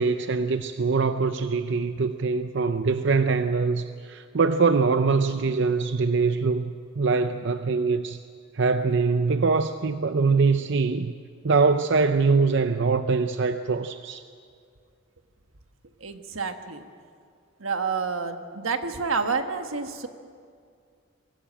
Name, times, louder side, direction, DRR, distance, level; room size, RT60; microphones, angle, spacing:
voice 1, 0.0-8.2 8.5-11.1 11.4-14.2, right 4 dB, 60° right, 9 dB, 0.6 m, -23 dB
voice 2, 16.0-16.9 17.6-20.1, right 5 dB, 85° right, 7 dB, 1.5 m, -29 dB
23.5 x 16.0 x 8.9 m, 2.2 s
head